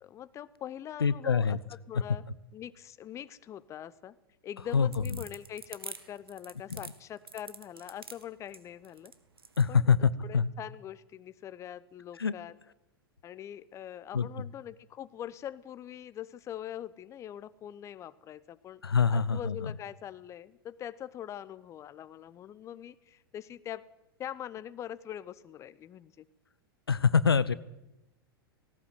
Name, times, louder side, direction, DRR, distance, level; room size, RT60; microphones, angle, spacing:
voice 1, 0.0-1.6 1.9-2.2 2.5-4.1 4.4-9.1 9.7-9.8 10.2-12.5 13.2-18.8 19.1-23.8 24.2-26.3, left 10 dB, 25° left, 17 dB, 0.8 m, -43 dB
voice 2, 1.0-1.6 4.7-4.9 6.7-6.8 9.6-10.5 12.2-12.3 14.1-14.5 18.8-19.7 26.9-27.5, left 6 dB, 75° left, 18 dB, 0.8 m, -25 dB
sound 1, 4.6-9.7, right 5 dB, 75° right, 1.9 m, -46 dB
18.0 x 18.0 x 8.0 m, 0.95 s
figure-of-eight pair, 95°, 13 cm